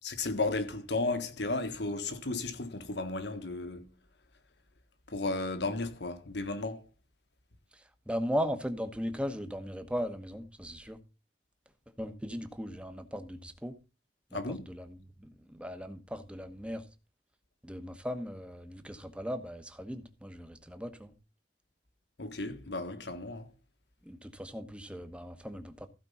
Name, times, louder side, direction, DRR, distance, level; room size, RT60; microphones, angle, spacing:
voice 1, 0.0-3.9 5.1-6.8 14.3-14.7 22.2-23.5, left 2 dB, 70° left, 1.5 m, -34 dB
voice 2, 7.7-11.0 12.0-13.8 14.3-16.9 17.6-21.1 24.0-25.9, equal, 5° right, 1.2 m, -38 dB
15.5 x 5.2 x 5.5 m
head